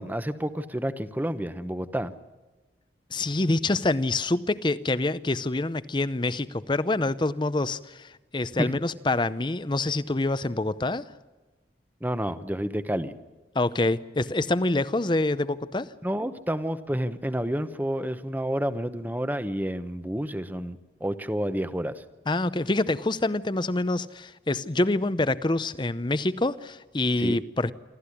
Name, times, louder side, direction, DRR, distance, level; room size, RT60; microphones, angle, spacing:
voice 1, 0.0-2.1 8.6-8.7 12.0-13.1 16.0-22.0 27.2-27.4, equal, 10° right, 12 dB, 1.0 m, -29 dB
voice 2, 3.1-11.0 13.5-15.9 22.3-27.7, left 2 dB, 25° left, 15 dB, 0.7 m, -26 dB
27.0 x 13.5 x 9.9 m, 1.2 s
head